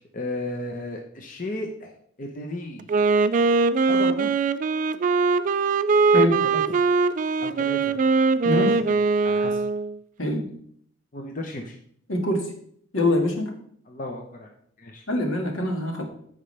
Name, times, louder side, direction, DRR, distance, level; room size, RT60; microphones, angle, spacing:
voice 1, 0.0-2.8 3.9-4.3 6.4-6.6 7.4-8.0 8.5-9.0 9.2-9.6 11.1-11.8 13.9-14.5 14.8-15.0, left 2 dB, 40° left, 2 dB, 0.9 m, -34 dB
Wind instrument woodwind instrument, 2.8-10.0, right 4 dB, 40° right, 0.3 m, -21 dB
voice 2, 12.1-12.5 12.9-13.5 15.1-16.0, left 1 dB, 75° left, 2 dB, 1.8 m, -24 dB
14.0 x 5.3 x 3.3 m, 0.65 s
head